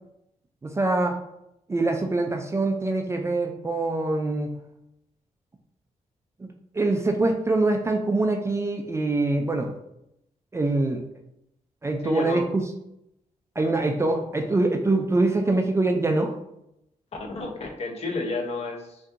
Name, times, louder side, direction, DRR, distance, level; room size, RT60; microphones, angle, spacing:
voice 1, 0.6-1.2 1.7-4.6 6.4-6.5 6.7-9.7 10.5-11.0 11.8-12.4 13.6-16.3, right 2 dB, 20° right, 3 dB, 0.3 m, -24 dB
voice 2, 12.0-12.4 13.6-13.8 17.3-19.0, left 3 dB, 50° left, 1 dB, 0.7 m, -31 dB
5.3 x 2.6 x 2.5 m, 0.82 s
wide cardioid pair, 140°, 14 cm